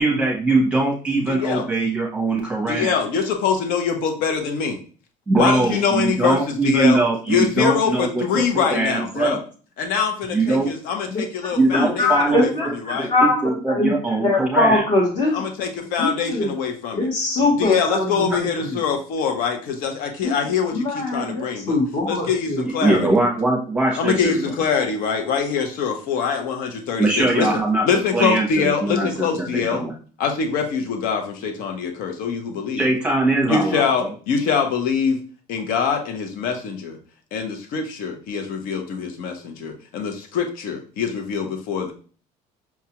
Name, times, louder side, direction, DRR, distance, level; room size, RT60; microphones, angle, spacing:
voice 1, 0.0-2.9 5.3-9.4 10.3-10.7 11.5-12.5 12.9-14.8 22.6-24.5 27.0-27.8 28.1-29.9 32.8-34.1, right 2 dB, 5° right, -2 dB, 0.8 m, -21 dB
voice 2, 1.3-1.7 2.7-4.8 5.4-7.0 7.3-9.4 9.8-12.5 12.9-13.1 15.3-17.1 17.6-21.8 22.1-23.1 24.0-27.5 27.8-29.8 30.2-32.9 33.4-35.2 35.5-37.0 37.3-41.9, left 6 dB, 70° left, 4 dB, 0.7 m, -24 dB
voice 3, 11.7-13.4 13.7-13.9 14.2-15.4 16.0-16.5 16.9-18.8 20.2-20.3 20.7-22.7, left 2 dB, 40° left, -4 dB, 1.0 m, -22 dB
5.8 x 2.3 x 2.9 m, 0.40 s
cardioid pair, 175°, 15 cm